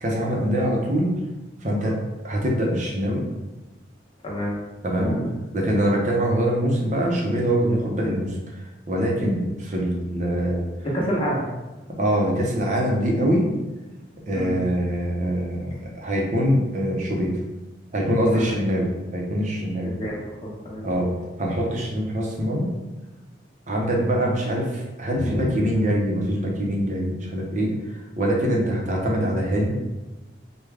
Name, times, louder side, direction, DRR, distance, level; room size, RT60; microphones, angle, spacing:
voice 1, 0.0-1.1 1.6-2.0 2.2-3.2 4.8-5.1 5.5-10.7 12.0-13.5 14.3-17.4 17.9-19.9 20.8-21.1 21.4-22.7 23.7-29.7, equal, 40° right, -1 dB, 0.6 m, -24 dB
voice 2, 4.2-4.6 5.0-5.3 10.9-11.4 14.3-14.6 18.4-18.6 19.8-20.8 25.1-25.6, equal, 30° left, -4 dB, 0.8 m, -28 dB
3.4 x 2.2 x 3.3 m, 1.1 s
head